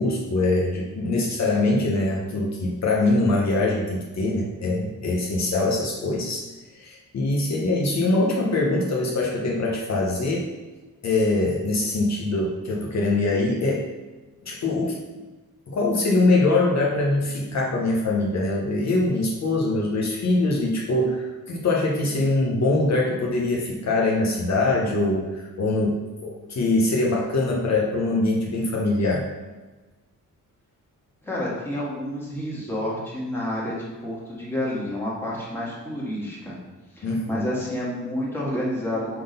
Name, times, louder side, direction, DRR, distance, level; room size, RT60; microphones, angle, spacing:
voice 1, 0.0-6.4 6.7-10.5 11.0-13.8 14.4-15.0 15.7-29.3 37.0-37.5, left 2 dB, 55° left, -3 dB, 1.1 m, -23 dB
voice 2, 31.2-36.6 37.0-39.2, left 1 dB, 5° left, -6 dB, 1.8 m, -29 dB
6.2 x 4.0 x 5.2 m, 1.2 s
wide cardioid pair, 165°, 32 cm